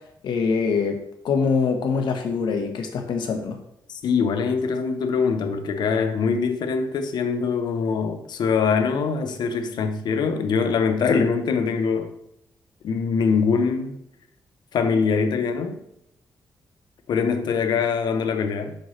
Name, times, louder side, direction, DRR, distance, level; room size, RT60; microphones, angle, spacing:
voice 1, 0.2-1.0 1.2-3.6, left 5 dB, 85° left, 1.0 m, -24 dB
voice 2, 3.9-12.1 12.8-14.0 14.7-15.8 17.1-18.8, left 5 dB, 70° left, 0.8 m, -23 dB
6.8 x 6.4 x 3.1 m
wide cardioid pair, 170°, 8 cm